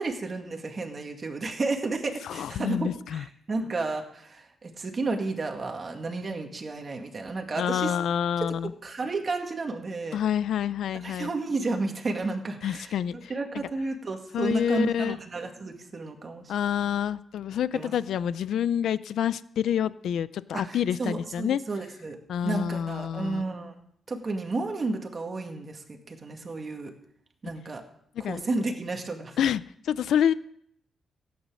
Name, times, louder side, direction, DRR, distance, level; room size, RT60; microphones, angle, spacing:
voice 1, 0.0-8.0 8.8-10.2 11.0-16.5 17.7-17.9 20.5-22.2 22.4-23.7 24.1-26.9 27.4-27.8 28.3-29.4, right 3 dB, 35° right, 3 dB, 2.1 m, -32 dB
voice 2, 2.2-3.2 7.6-8.7 10.1-11.3 12.6-13.3 14.3-15.2 16.5-21.6 22.3-23.4 28.2-28.4 29.4-30.3, left 9 dB, 85° left, 17 dB, 0.4 m, -27 dB
16.0 x 9.5 x 6.3 m, 0.69 s
wide cardioid pair, 145°, 0 cm